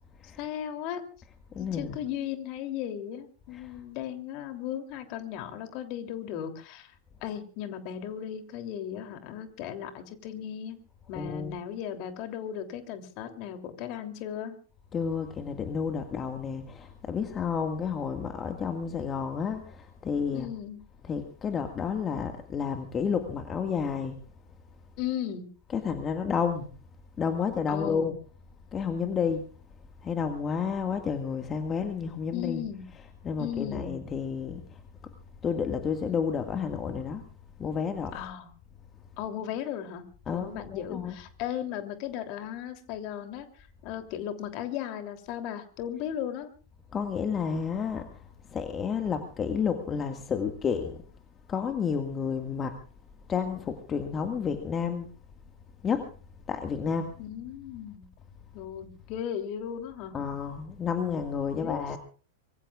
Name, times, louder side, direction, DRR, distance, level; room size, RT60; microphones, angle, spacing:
voice 1, 0.4-1.0 1.6-6.9 7.2-10.8 11.1-14.6 20.3-20.8 25.0-25.5 27.7-28.1 32.3-32.9 33.4-33.9 38.1-38.5 39.2-40.0 40.3-46.5 57.2-58.1 58.5-60.1 61.5-62.0, left 10 dB, 45° left, 3.1 m, -36 dB
voice 2, 1.5-2.0 3.5-3.7 11.1-11.5 14.9-20.5 21.0-24.2 25.7-26.7 27.2-28.2 28.7-29.5 30.0-32.6 32.9-34.8 35.4-37.2 37.6-38.2 40.3-41.2 46.9-48.1 48.5-51.0 51.5-52.8 53.3-55.1 55.8-56.1 56.5-57.1 60.1-62.0, left 6 dB, 25° left, 1.8 m, -31 dB
25.5 x 22.5 x 2.4 m
figure-of-eight pair, 95°, 0 cm